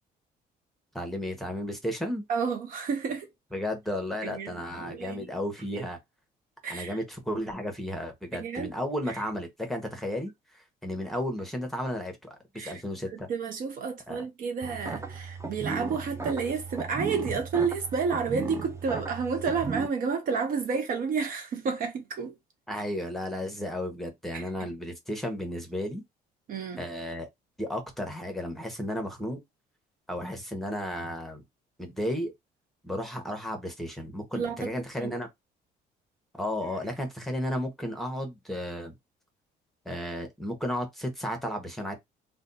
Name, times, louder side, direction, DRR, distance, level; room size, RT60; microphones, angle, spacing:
voice 1, 0.9-2.3 3.5-6.0 6.7-13.3 14.1-14.2 22.7-26.0 26.8-27.3 27.6-29.4 30.1-31.4 31.8-32.3 32.8-35.3 36.3-38.9 39.8-41.9, equal, ahead, 1.0 m, -33 dB
voice 2, 2.3-3.3 4.2-5.3 5.7-5.9 6.6-7.0 8.3-8.7 9.1-9.2 12.6-12.8 13.1-22.4 24.3-24.7 26.5-26.8 34.3-34.7 35.0-35.1, right 5 dB, 55° right, 0.7 m, -31 dB
sound 1, 14.6-19.9, right 4 dB, 15° right, 0.5 m, -36 dB
2.5 x 2.3 x 3.9 m
cardioid pair, 110°, 17 cm